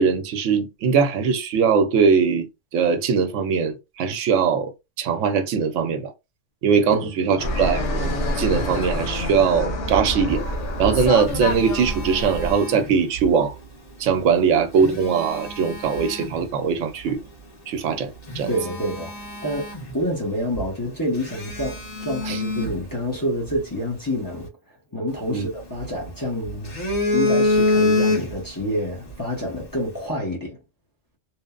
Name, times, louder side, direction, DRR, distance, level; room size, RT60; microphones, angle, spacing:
voice 1, 0.0-2.5 2.7-4.7 5.0-6.1 6.6-13.5 14.0-17.2 17.7-18.5 22.3-22.4 25.3-25.5, right 6 dB, 85° right, 0.9 m, -21 dB
voice 2, 6.9-7.3 18.5-24.5 24.9-26.8 27.1-30.6, equal, 20° left, 0.6 m, -28 dB
Fixed-wing aircraft airplane, 7.4-12.5, left 1 dB, 70° left, 1.2 m, -26 dB
Telephone, 10.7-13.3 14.5-16.4 17.1-17.2 17.8-17.9 18.2-20.3 20.5-20.7 21.2-23.6 25.1-26.1 26.5-28.6 28.9-29.1, left 2 dB, 40° left, 1.3 m, -26 dB
3.0 x 2.0 x 2.3 m
omnidirectional pair, 1.2 m